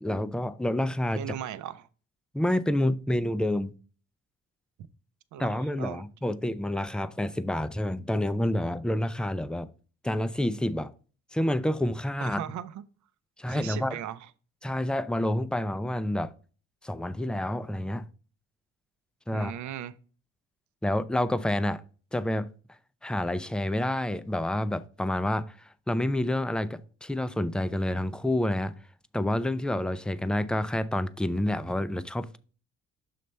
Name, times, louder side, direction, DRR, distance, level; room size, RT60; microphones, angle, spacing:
voice 1, 0.0-1.2 2.3-3.7 5.4-9.7 10.0-10.9 11.3-12.4 13.4-14.0 14.6-16.3 16.8-18.0 19.3-19.5 20.8-21.8 22.1-22.5 23.0-28.7 29.1-32.4, left 1 dB, 5° left, 0.4 m, -28 dB
voice 2, 1.1-1.9 5.3-6.0 12.2-12.8 13.5-14.3 19.3-19.9, right 10 dB, 70° right, 0.6 m, -38 dB
6.7 x 3.3 x 5.2 m
cardioid pair, 90°, 30 cm